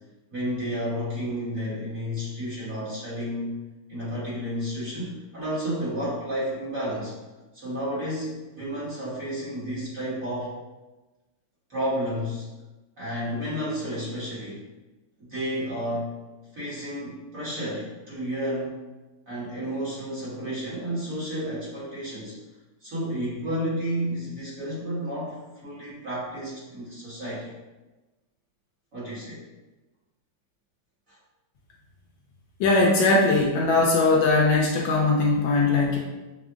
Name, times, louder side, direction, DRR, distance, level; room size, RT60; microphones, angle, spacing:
voice 1, 0.3-3.6 3.9-7.1 7.5-10.5 11.7-12.5 13.0-14.6 15.2-16.1 16.5-18.8 19.3-22.3 22.8-27.5 28.9-29.4 31.1-31.2, equal, 45° right, -9 dB, 1.4 m, -31 dB
voice 2, 32.6-36.0, left 3 dB, 75° left, -2 dB, 1.3 m, -20 dB
5.6 x 2.0 x 3.5 m, 1.1 s
omnidirectional pair, 2.3 m